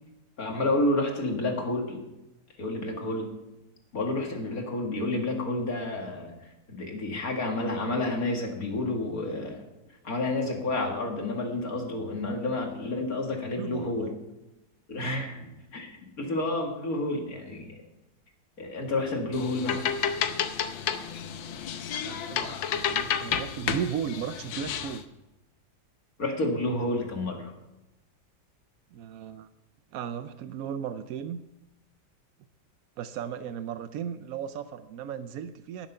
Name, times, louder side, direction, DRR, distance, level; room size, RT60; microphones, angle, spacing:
voice 1, 0.4-2.0 2.6-3.3 3.9-6.3 6.7-9.6 10.0-14.1 14.9-15.9 16.2-17.8 18.6-19.8 26.2-27.5, left 2 dB, 50° left, 1 dB, 2.5 m, -30 dB
voice 2, 13.6-14.1 15.1-15.3 22.0-25.0 28.9-29.5 29.9-31.4 33.0-35.9, right 8 dB, 75° right, 11 dB, 0.8 m, -36 dB
sound 1, 19.3-25.0, left 8 dB, 85° left, 1.6 m, -31 dB
17.5 x 7.3 x 5.6 m, 0.96 s
omnidirectional pair, 2.1 m